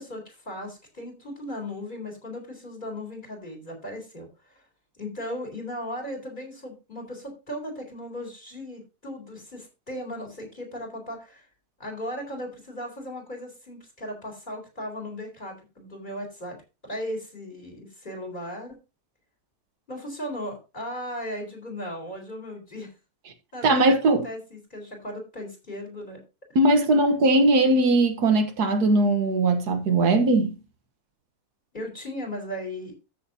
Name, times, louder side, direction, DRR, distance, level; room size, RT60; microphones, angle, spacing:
voice 1, 0.0-4.6 5.0-11.5 11.8-16.6 16.8-18.8 19.9-22.9 23.5-26.2 31.7-32.9, left 1 dB, 30° left, 4.2 m, -37 dB
voice 2, 23.6-24.3 26.6-30.6, right 2 dB, 80° right, 1.8 m, -20 dB
14.0 x 6.9 x 2.8 m
omnidirectional pair, 1.6 m